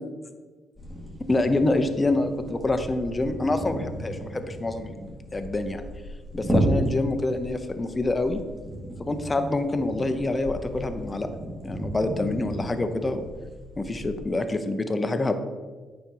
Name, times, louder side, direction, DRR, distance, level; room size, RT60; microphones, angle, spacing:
sound 1, 0.8-14.2, right 1 dB, 20° right, 2.6 m, -33 dB
voice 1, 1.3-5.8 6.3-8.4 9.0-11.3 11.6-13.2 13.8-15.4, left 2 dB, 25° left, 7 dB, 0.9 m, -26 dB
9.0 x 5.3 x 4.6 m, 1.4 s
cardioid pair, 90°, 0 cm